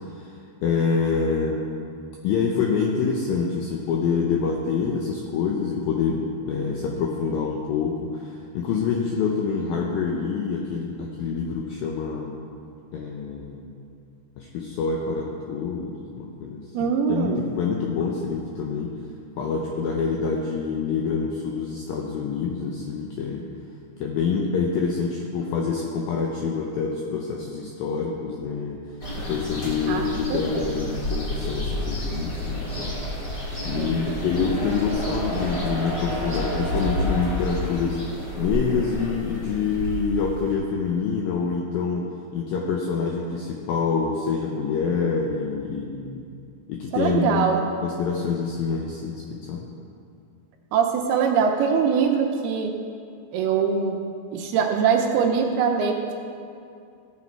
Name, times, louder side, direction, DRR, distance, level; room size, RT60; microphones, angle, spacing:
voice 1, 0.6-1.7 2.2-12.4 12.9-13.7 14.4-18.9 19.4-23.5 24.0-28.8 29.2-33.0 33.7-38.0 38.4-42.1 42.3-46.2 46.7-47.5 47.8-49.7, left 5 dB, 80° left, 0 dB, 2.1 m, -26 dB
voice 2, 16.7-17.5 29.9-30.7 33.7-34.1 46.9-47.7 50.7-52.7 53.3-54.0 54.3-56.1, right 6 dB, 80° right, 2 dB, 2.5 m, -23 dB
sound 1, 29.0-40.5, equal, 60° left, 0.8 m, -30 dB
15.5 x 8.3 x 4.5 m, 2.5 s
omnidirectional pair, 5.1 m